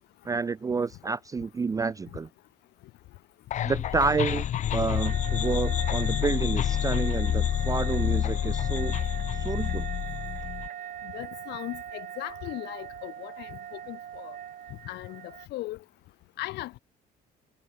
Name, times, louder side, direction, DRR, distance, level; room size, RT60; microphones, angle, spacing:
voice 1, 0.2-2.3 3.6-8.9 9.3-9.9, right 4 dB, 20° right, 0.5 m, -29 dB
sound 1, 3.5-10.7, left 11 dB, 45° left, 0.5 m, -28 dB
sound 2, 4.9-15.5, right 10 dB, 55° right, 3.6 m, -41 dB
voice 2, 11.1-14.3 14.9-15.2 15.5-15.8 16.4-16.8, left 18 dB, 85° left, 2.0 m, -38 dB
cardioid pair, 110°, 17 cm